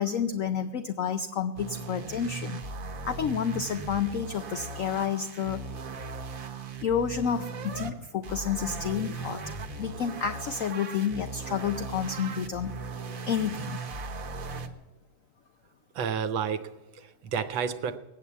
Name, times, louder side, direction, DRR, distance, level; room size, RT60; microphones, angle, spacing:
voice 1, 0.0-2.6 3.0-5.6 6.8-9.4 9.8-12.7 13.2-13.8, left 7 dB, 85° left, 8 dB, 0.7 m, -30 dB
sound 1, 1.6-7.9 8.2-14.7, right 3 dB, 50° right, 1.3 m, -38 dB
voice 2, 15.9-18.0, right 7 dB, 75° right, 11 dB, 1.5 m, -31 dB
19.0 x 8.4 x 8.3 m, 1.1 s
omnidirectional pair, 2.2 m